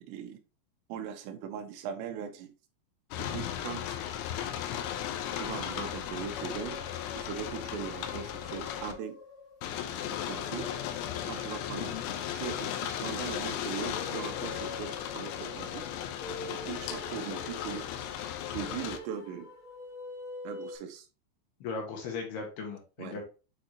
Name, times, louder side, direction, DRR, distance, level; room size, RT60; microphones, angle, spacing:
voice 1, 0.1-0.4 0.9-2.5 3.2-4.0 5.3-6.8 7.2-9.2 10.1-10.7 11.2-11.9 12.3-15.9 16.5-17.9 18.5-19.5 20.4-21.1 23.0-23.2, right 8 dB, 75° right, 5 dB, 3.0 m, -40 dB
sound 1, 3.1-8.9 9.6-19.0, left 10 dB, 85° left, 3.1 m, -36 dB
sound 2, 4.9-20.8, left 3 dB, 40° left, 2.2 m, -46 dB
voice 2, 11.8-12.1 21.6-23.2, left 4 dB, 65° left, 1 dB, 3.3 m, -38 dB
8.7 x 4.2 x 2.9 m, 0.32 s
omnidirectional pair, 5.4 m